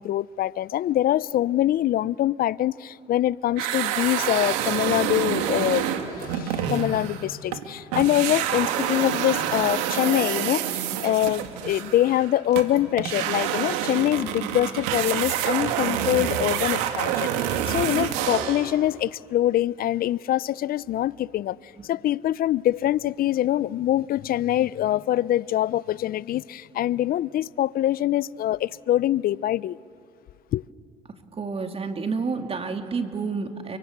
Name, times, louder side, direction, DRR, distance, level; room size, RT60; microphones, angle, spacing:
voice 1, 0.0-21.6 21.8-29.8 30.5-30.6, left 13 dB, 50° left, 0.6 m, -24 dB
sound 1, 3.6-7.7 7.9-18.7, right 10 dB, 80° right, 2.2 m, -27 dB
voice 2, 31.4-33.8, right 4 dB, 30° right, 2.5 m, -29 dB
30.0 x 24.5 x 8.1 m
supercardioid pair, 80°, 19 cm